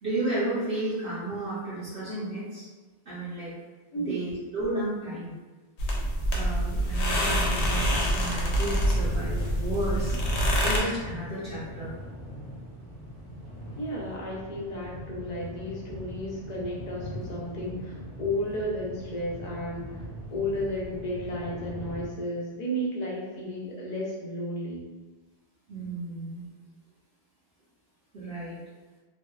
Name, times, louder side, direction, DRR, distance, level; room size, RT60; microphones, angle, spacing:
voice 1, 0.0-2.6 3.1-3.5 3.9-5.3 5.9-6.0 6.3-10.2 10.6-11.9 25.7-26.5 28.1-28.6, right 2 dB, 65° right, -11 dB, 0.9 m, -33 dB
sound 1, 5.8-10.8, equal, 75° left, 0.8 m, -26 dB
sound 2, 7.0-22.1, equal, 35° right, 0.6 m, -41 dB
voice 2, 13.8-19.9 20.3-24.9, equal, 50° left, -4 dB, 0.5 m, -33 dB
2.6 x 2.2 x 2.2 m, 1.2 s
omnidirectional pair, 1.2 m